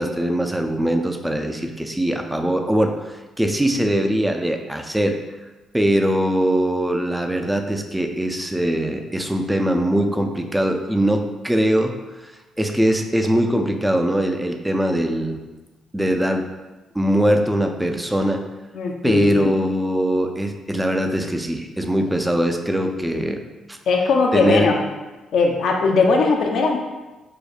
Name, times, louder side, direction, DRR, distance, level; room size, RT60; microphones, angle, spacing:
voice 1, 0.0-5.2 5.7-11.9 12.2-12.3 12.6-15.4 15.9-16.5 16.9-18.4 19.0-23.4 23.7-23.8 24.3-24.7, equal, 10° right, 5 dB, 0.3 m, -21 dB
voice 2, 18.7-19.5 23.9-24.8 25.3-26.8, left 4 dB, 70° left, 2 dB, 0.4 m, -19 dB
4.8 x 2.1 x 2.3 m, 1.1 s
cardioid pair, 90°, 0 cm